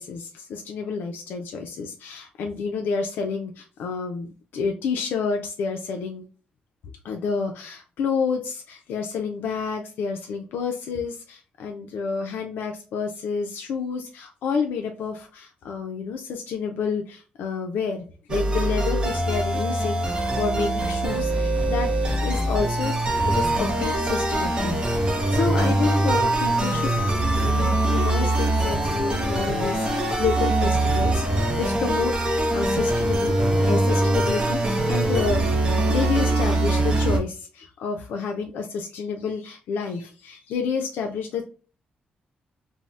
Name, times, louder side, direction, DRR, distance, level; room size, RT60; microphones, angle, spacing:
voice 1, 0.0-4.3 4.5-6.3 7.0-18.0 18.3-20.0 20.4-27.1 27.4-29.9 30.2-41.4, left 5 dB, 85° left, 3 dB, 0.4 m, -29 dB
sound 1, 18.3-37.2, right 1 dB, 30° right, 0.6 m, -23 dB
2.6 x 2.0 x 3.1 m, 0.37 s
cardioid pair, 135°, 3 cm